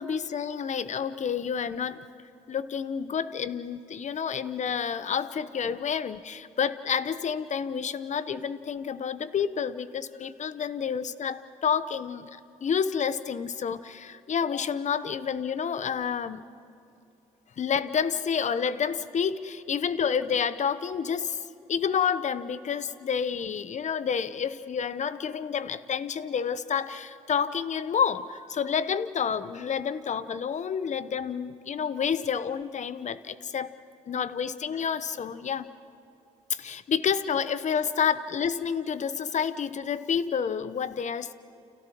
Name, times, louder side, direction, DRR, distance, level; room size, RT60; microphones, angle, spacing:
voice 1, 0.0-2.0 2.5-16.4 17.6-33.7 34.1-35.7 36.5-41.3, left 7 dB, 45° left, 14 dB, 0.9 m, -29 dB
29.5 x 29.0 x 3.1 m, 2.6 s
hypercardioid pair, 50°, 16 cm